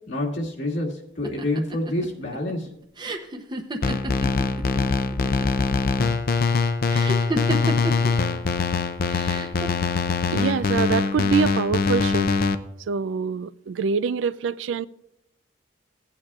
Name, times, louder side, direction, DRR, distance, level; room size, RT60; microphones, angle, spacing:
voice 1, 0.1-0.9 1.2-2.7, left 1 dB, 75° left, 1.9 m, -27 dB
sound 1, 1.2-4.8 5.1-5.8 6.9-8.1 9.1-9.7, right 1 dB, 25° right, 0.7 m, -30 dB
sound 2, 3.8-12.5, left 4 dB, 50° left, 0.5 m, -23 dB
voice 2, 10.3-12.3 12.9-14.9, right 6 dB, 75° right, 0.3 m, -25 dB
16.5 x 8.9 x 2.4 m
head